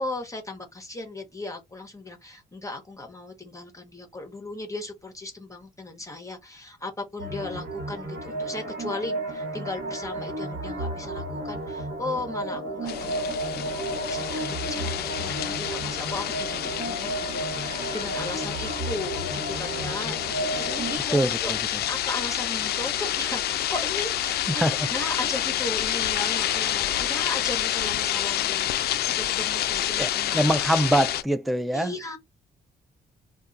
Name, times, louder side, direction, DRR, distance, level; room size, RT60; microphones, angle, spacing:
voice 1, 0.0-20.2 20.6-24.6 24.9-30.5 31.7-32.2, left 2 dB, 20° left, 0.9 m, -36 dB
sound 1, 7.2-21.0, right 2 dB, 65° right, 1.2 m, -33 dB
sound 2, 12.9-31.2, left 12 dB, 70° left, 0.4 m, -28 dB
voice 2, 21.1-21.6 24.5-24.7 30.0-31.9, right 1 dB, ahead, 0.4 m, -24 dB
2.3 x 2.3 x 3.9 m
supercardioid pair, 60°, 17 cm